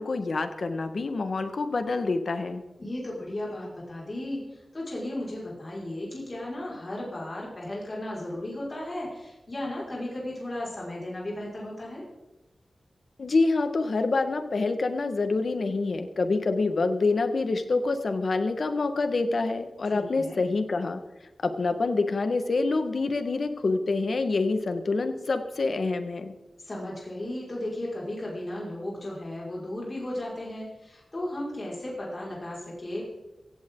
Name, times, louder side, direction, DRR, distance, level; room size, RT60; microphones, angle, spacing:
voice 1, 0.0-2.6 13.2-21.0 21.4-26.3, left 3 dB, 65° left, 8 dB, 1.6 m, -26 dB
voice 2, 2.8-12.0 19.8-20.4 26.6-33.0, left 1 dB, 35° left, -5 dB, 5.6 m, -35 dB
16.5 x 16.5 x 3.9 m, 1.1 s
wide cardioid pair, 90°, 0 cm